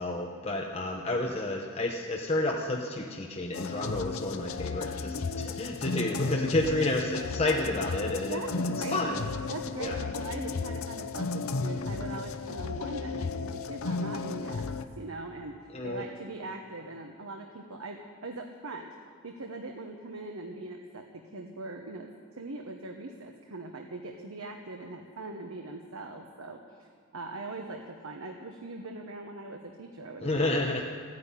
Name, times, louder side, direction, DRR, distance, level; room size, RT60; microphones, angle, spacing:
voice 1, 0.0-8.4 8.8-9.2 9.8-9.9 15.7-16.0 30.2-30.8, left 2 dB, 30° left, 0 dB, 0.9 m, -30 dB
sound 1, 3.5-14.8, left 4 dB, 85° left, 0.7 m, -34 dB
voice 2, 8.3-9.2 9.5-14.7 15.0-18.9 19.2-22.1 22.3-26.6 27.1-30.6, right 2 dB, 90° right, 3 dB, 1.1 m, -41 dB
15.0 x 9.6 x 9.9 m, 2.1 s
head